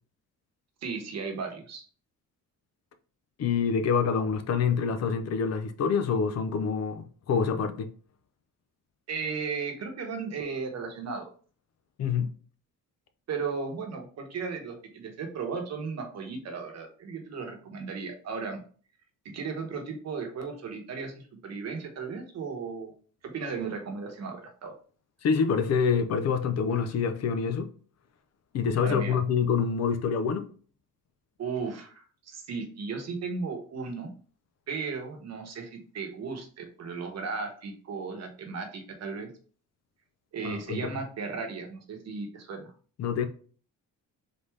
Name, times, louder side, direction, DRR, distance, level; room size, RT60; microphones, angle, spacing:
voice 1, 0.8-1.8 9.1-11.3 13.3-18.6 19.2-22.9 23.2-24.7 28.8-29.2 31.4-34.1 34.7-39.3 40.3-42.7, right 5 dB, 55° right, 1.0 m, -35 dB
voice 2, 3.4-7.9 12.0-12.3 25.2-27.7 28.5-30.5 40.4-40.9 43.0-43.3, left 6 dB, 55° left, 0.5 m, -26 dB
3.9 x 3.5 x 3.1 m
wide cardioid pair, 180°, 31 cm